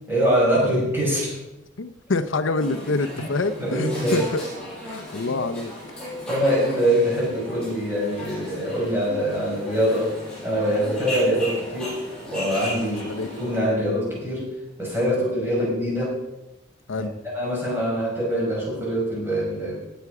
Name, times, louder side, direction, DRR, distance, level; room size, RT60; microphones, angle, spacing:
voice 1, 0.1-1.4 3.1-3.3 3.6-4.2 4.9-5.3 6.3-10.1 10.4-12.0 12.3-13.0 13.3-14.5 14.8-16.2 16.9-17.1 17.3-19.8, equal, 10° right, -5 dB, 5.9 m, -24 dB
voice 2, 1.8-4.4 4.8-5.7 12.8-13.3 15.1-15.2 16.9-17.1, left 3 dB, 80° left, 9 dB, 0.7 m, -27 dB
sound 1, 2.6-13.6, left 1 dB, 5° left, 5.9 m, -36 dB
18.0 x 8.1 x 4.9 m, 0.96 s
head